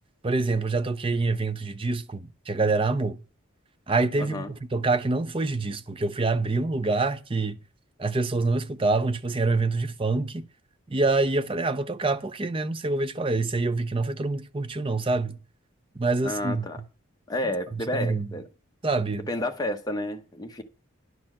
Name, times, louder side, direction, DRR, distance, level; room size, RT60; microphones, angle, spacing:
voice 1, 0.2-3.2 3.9-7.6 8.0-10.4 10.9-15.4 16.0-16.7 17.7-18.3 18.8-19.3, right 3 dB, 25° right, 0.5 m, -26 dB
voice 2, 4.2-4.5 16.2-16.8 17.3-18.5 19.3-20.6, left 1 dB, 15° left, 0.9 m, -30 dB
11.0 x 4.4 x 7.3 m
head